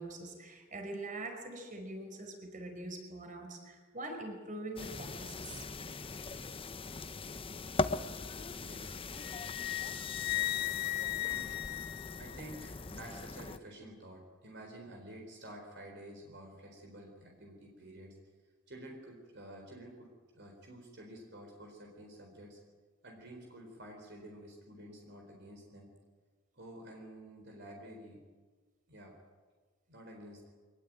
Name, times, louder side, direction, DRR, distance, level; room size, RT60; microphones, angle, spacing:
voice 1, 0.0-5.7, right 2 dB, 40° right, 4 dB, 5.2 m, -43 dB
sound 1, 4.8-13.6, left 3 dB, 25° left, 0.7 m, -40 dB
voice 2, 8.5-9.0 11.2-11.7 12.2-18.2 18.7-22.6 23.0-25.9 26.5-28.2 28.9-29.2 29.9-30.5, right 1 dB, 60° right, 2 dB, 4.4 m, -50 dB
Wind instrument woodwind instrument, 9.2-12.7, left 16 dB, 55° left, 1.5 m, -37 dB
24.0 x 20.5 x 9.1 m, 1.4 s
head